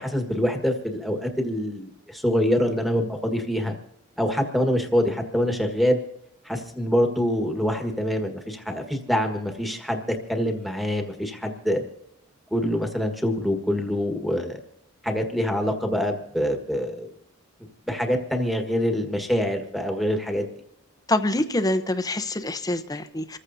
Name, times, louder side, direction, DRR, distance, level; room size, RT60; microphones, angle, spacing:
voice 1, 0.0-3.8 4.2-6.0 6.4-11.8 12.5-14.6 15.0-17.1 17.9-20.5, equal, ahead, 3 dB, 1.5 m, -25 dB
voice 2, 21.1-23.4, left 1 dB, 15° left, 9 dB, 0.8 m, -25 dB
27.5 x 14.5 x 2.7 m, 0.84 s
head